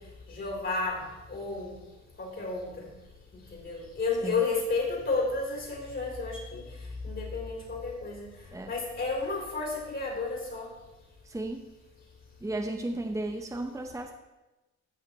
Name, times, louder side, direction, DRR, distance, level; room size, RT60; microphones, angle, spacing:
voice 1, 0.3-1.0 1.3-1.7 2.2-2.7 3.5-6.6 7.0-8.3 8.7-10.6, left 3 dB, 40° left, -1 dB, 3.7 m, -31 dB
voice 2, 11.2-11.6 12.4-14.1, right 2 dB, 10° right, 3 dB, 0.9 m, -34 dB
15.5 x 5.7 x 4.4 m, 1.1 s
cardioid pair, 90°, 30 cm